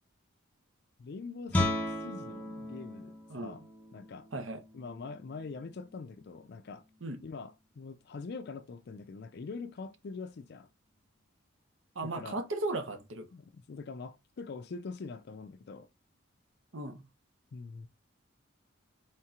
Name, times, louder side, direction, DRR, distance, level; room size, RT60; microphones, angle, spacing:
voice 1, 1.0-3.2 3.4-3.6 3.9-4.3 4.7-6.8 7.2-10.7 12.0-12.4 13.3-15.9 17.5-17.9, left 4 dB, 55° left, 0.4 m, -43 dB
Guitar, 1.5-7.1, left 1 dB, 10° left, 0.9 m, -37 dB
voice 2, 4.3-4.6 7.0-7.2 11.9-13.3 16.7-17.0, right 2 dB, 75° right, 0.9 m, -36 dB
4.2 x 3.7 x 2.4 m
head